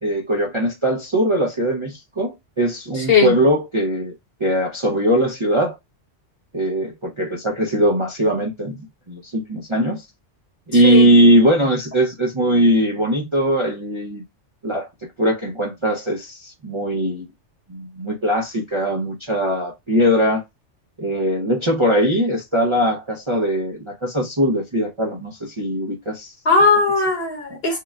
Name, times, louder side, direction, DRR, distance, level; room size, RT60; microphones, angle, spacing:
voice 1, 0.0-4.1 4.4-5.8 6.5-10.0 10.7-14.2 14.6-14.9 15.2-17.3 17.7-20.4 21.0-26.3, right 1 dB, 30° right, 0.6 m, -20 dB
voice 2, 3.0-3.4 10.7-11.1 26.4-27.8, left 4 dB, 55° left, 1.5 m, -18 dB
6.7 x 2.2 x 2.2 m
omnidirectional pair, 1.3 m